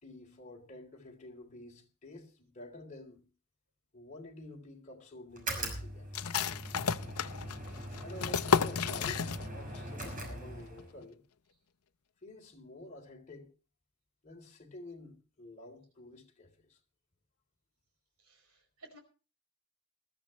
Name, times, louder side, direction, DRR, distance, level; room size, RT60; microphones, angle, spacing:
voice 1, 0.0-3.3 3.9-6.4 8.0-9.3 9.5-11.2 12.2-13.5 14.2-16.8, left 1 dB, 35° left, 3.5 m, -50 dB
sound 1, 5.3-11.0, right 1 dB, 35° right, 6.0 m, -41 dB
sound 2, 6.1-9.8 10.0-10.1 10.6-11.0, left 6 dB, 85° left, 0.7 m, -32 dB
voice 2, 18.2-19.0, right 1 dB, 75° right, 5.1 m, -56 dB
20.5 x 13.5 x 3.2 m
head